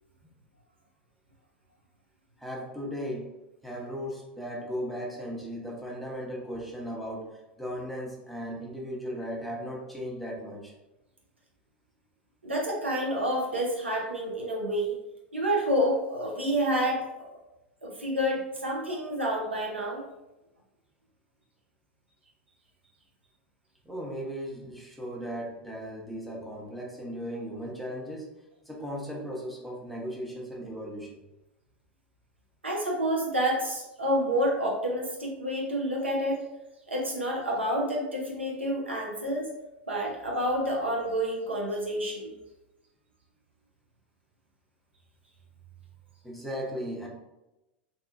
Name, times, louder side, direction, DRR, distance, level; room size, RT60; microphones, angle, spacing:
voice 1, 2.4-3.3 3.6-10.7 23.8-28.3 28.6-31.2 46.2-47.1, equal, ahead, -3 dB, 0.7 m, -37 dB
voice 2, 12.4-15.0 15.3-17.4 17.8-20.0 32.6-36.4 36.9-39.5 39.9-42.3, equal, 90° right, -2 dB, 0.7 m, -29 dB
2.8 x 2.3 x 2.3 m, 0.97 s
figure-of-eight pair, 90°, 6 cm